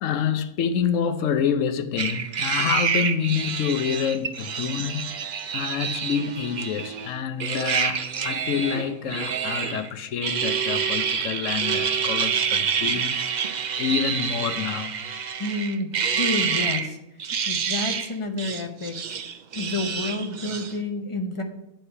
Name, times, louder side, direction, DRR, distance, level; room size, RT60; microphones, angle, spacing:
voice 1, 0.0-5.1 5.5-13.3 13.8-14.9, left 7 dB, 70° left, 1.0 m, -27 dB
sound 1, 2.0-7.1 7.4-9.9 10.2-16.9 17.2-18.1 18.4-20.8, right 6 dB, 70° right, 0.4 m, -27 dB
voice 2, 15.4-15.9 16.2-17.0 17.5-19.0 19.5-21.4, left 2 dB, 30° left, 0.6 m, -29 dB
9.6 x 4.5 x 5.5 m
omnidirectional pair, 1.5 m